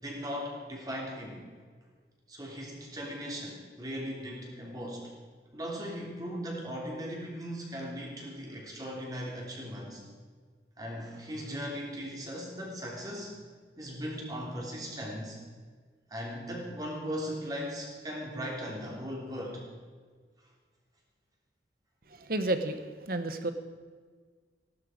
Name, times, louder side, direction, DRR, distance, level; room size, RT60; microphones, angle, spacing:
voice 1, 0.0-1.4 2.3-5.1 5.5-10.0 10.8-13.4 13.8-15.4 16.1-19.6, equal, 20° right, -2 dB, 3.2 m, -38 dB
voice 2, 22.1-23.5, right 2 dB, 55° right, 9 dB, 1.2 m, -31 dB
16.5 x 12.0 x 5.1 m, 1.6 s
head